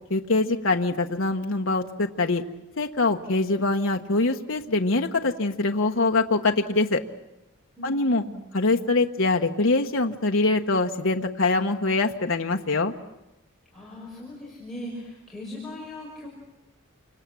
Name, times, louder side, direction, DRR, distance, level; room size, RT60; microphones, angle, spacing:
voice 1, 0.1-2.4 2.8-7.0 7.8-8.2 8.5-12.9, left 3 dB, 70° left, 3 dB, 1.2 m, -23 dB
voice 2, 7.8-8.4 13.7-16.3, left 1 dB, ahead, -5 dB, 5.6 m, -39 dB
29.0 x 26.0 x 7.6 m, 0.94 s
head